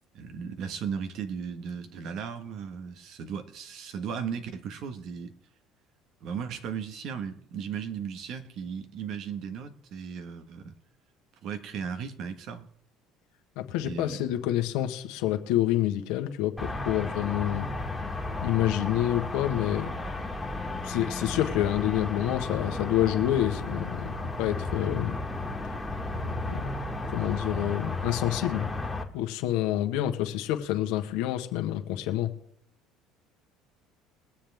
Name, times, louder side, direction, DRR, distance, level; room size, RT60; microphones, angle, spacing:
voice 1, 0.1-5.3 6.2-10.7 11.4-12.7 13.8-14.2, right 7 dB, 60° right, 1.5 m, -36 dB
voice 2, 13.6-17.7 18.4-19.9 20.8-25.2 26.5-26.7 27.1-28.7 29.1-32.3, left 13 dB, 80° left, 1.4 m, -28 dB
sound 1, 16.6-29.0, left 2 dB, 5° left, 2.0 m, -34 dB
22.0 x 7.5 x 3.6 m
supercardioid pair, 85°, 0 cm